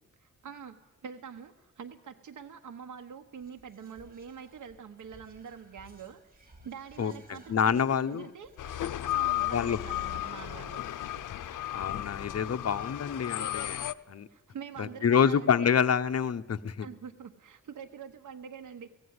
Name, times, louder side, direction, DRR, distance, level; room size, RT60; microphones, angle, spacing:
voice 1, 0.2-8.5 9.1-10.8 14.3-15.7 16.8-18.9, right 7 dB, 75° right, 5 dB, 1.2 m, -45 dB
Whispering, 3.4-14.4 14.7-14.8 15.0-15.5, right 1 dB, 30° right, 4.9 m, -58 dB
voice 2, 7.0-8.3 9.5-9.8 11.7-14.3 14.8-16.9, left 7 dB, 55° left, 10 dB, 0.9 m, -27 dB
sound 1, 8.6-13.9, left 13 dB, 80° left, 0.6 m, -34 dB
16.5 x 16.0 x 9.6 m, 1.0 s
cardioid pair, 95°, 31 cm